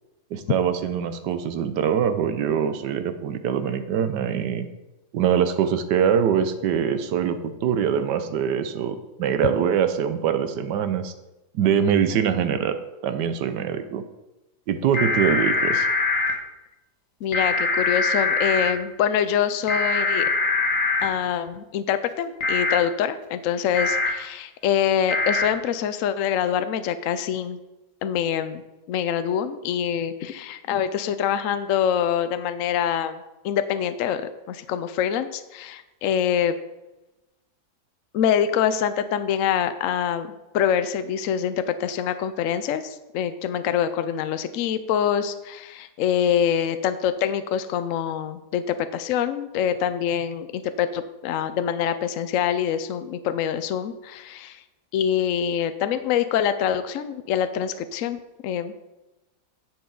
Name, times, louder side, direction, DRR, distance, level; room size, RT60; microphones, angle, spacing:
voice 1, 0.3-4.7 5.1-11.1 11.5-12.8 13.0-14.0 14.7-15.9, right 8 dB, 90° right, 10 dB, 1.4 m, -23 dB
sound 1, 14.9-16.3 17.3-18.7 19.7-21.0 22.4-22.8 23.7-24.1 25.1-25.4, left 3 dB, 85° left, 1.9 m, -23 dB
voice 2, 17.2-20.3 21.0-27.6 28.0-28.6 28.9-36.5 38.1-40.3 40.5-54.6 54.9-58.7, left 9 dB, 65° left, 11 dB, 0.8 m, -25 dB
10.0 x 7.1 x 3.8 m, 1.0 s
omnidirectional pair, 1.8 m